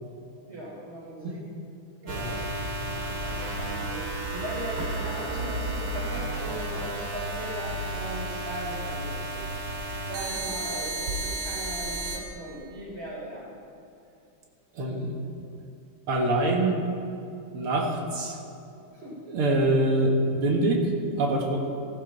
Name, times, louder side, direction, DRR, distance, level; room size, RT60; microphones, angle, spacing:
voice 1, 0.5-1.4 2.0-2.4 2.8-4.0 4.3-9.4 10.1-13.5 18.9-19.1, right 1 dB, 30° right, -8 dB, 3.2 m, -38 dB
voice 2, 2.0-2.4 14.7-15.1 16.1-16.8 17.5-18.4 19.3-20.9 21.2-21.7, right 2 dB, 80° right, 1 dB, 2.6 m, -25 dB
sound 1, 2.1-12.2, right 1 dB, 55° right, 2.5 m, -32 dB
16.5 x 14.0 x 4.0 m, 2.6 s
omnidirectional pair, 2.4 m